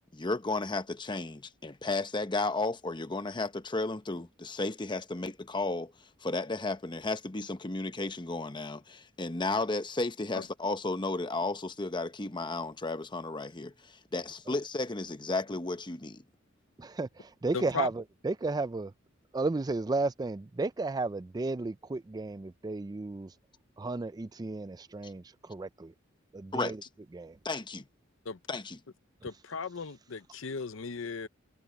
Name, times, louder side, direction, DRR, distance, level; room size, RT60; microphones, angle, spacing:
voice 1, 0.0-5.9 6.2-16.2 26.5-26.7 27.4-27.8 28.5-28.8, left 3 dB, 25° left, 0.9 m, -33 dB
voice 2, 16.8-18.9 19.3-23.3 23.8-25.9 26.3-26.8 27.1-27.4, right 3 dB, 20° right, 0.4 m, -33 dB
voice 3, 17.5-17.9 28.3-28.4 29.2-31.3, left 5 dB, 70° left, 0.7 m, -36 dB
head